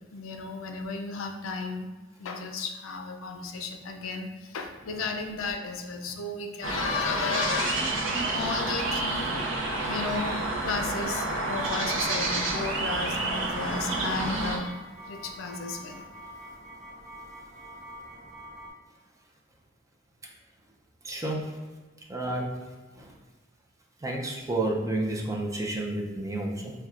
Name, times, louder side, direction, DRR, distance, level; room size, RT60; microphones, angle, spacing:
voice 1, 0.1-1.9 2.2-8.0 8.3-14.7 15.1-16.1, left 4 dB, 80° left, 5 dB, 0.4 m, -34 dB
sound 1, 6.6-14.6, right 2 dB, 65° right, 0.6 m, -29 dB
sound 2, 10.6-18.7, equal, 40° right, 1.0 m, -45 dB
voice 2, 21.0-21.6 22.1-22.5 23.0-23.1 24.0-26.7, right 2 dB, 15° right, -1 dB, 0.5 m, -30 dB
5.7 x 2.2 x 2.4 m, 1.3 s
head